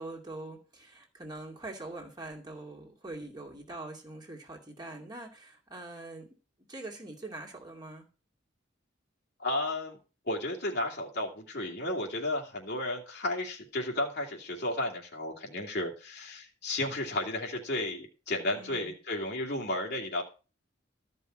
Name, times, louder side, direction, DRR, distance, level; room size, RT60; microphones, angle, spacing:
voice 1, 0.0-6.3 6.7-8.1 18.5-19.0, right 2 dB, 20° right, -1 dB, 2.5 m, -43 dB
voice 2, 9.4-10.0 10.3-20.2, left 1 dB, 60° left, -1 dB, 2.5 m, -33 dB
13.0 x 5.4 x 7.4 m, 0.35 s
head